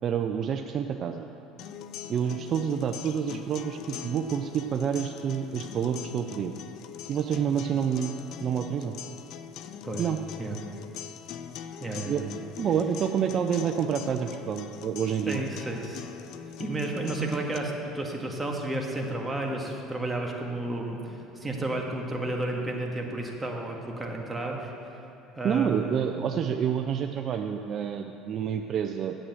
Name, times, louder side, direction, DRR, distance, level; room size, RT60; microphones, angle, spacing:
voice 1, 0.0-1.3 2.1-6.6 7.1-8.1 8.4-8.9 10.0-10.2 12.1-12.2 12.6-15.4 25.4-29.2, right 8 dB, 45° right, 5 dB, 0.5 m, -28 dB
sound 1, 1.6-17.6, left 8 dB, 65° left, 0.5 m, -42 dB
voice 2, 11.8-12.2 15.3-16.0 16.6-24.7 25.3-26.2, right 2 dB, 15° right, 0 dB, 1.8 m, -32 dB
8.6 x 7.8 x 7.8 m, 2.8 s
supercardioid pair, 90°, 0 cm